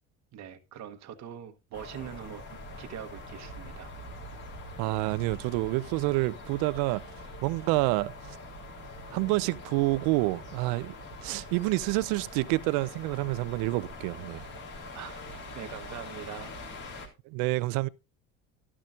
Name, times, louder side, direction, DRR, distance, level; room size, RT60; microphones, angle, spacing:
voice 1, 0.3-2.4 2.8-3.9 14.9-15.2 15.5-16.5, right 9 dB, 45° right, 1.1 m, -42 dB
sound 1, 1.7-17.1, left 2 dB, 55° left, 3.4 m, -44 dB
voice 2, 4.8-7.0 7.4-8.1 9.1-10.9 11.2-14.5 17.3-17.9, right 21 dB, 65° right, 0.6 m, -28 dB
12.0 x 11.5 x 2.4 m
hypercardioid pair, 80°, 38 cm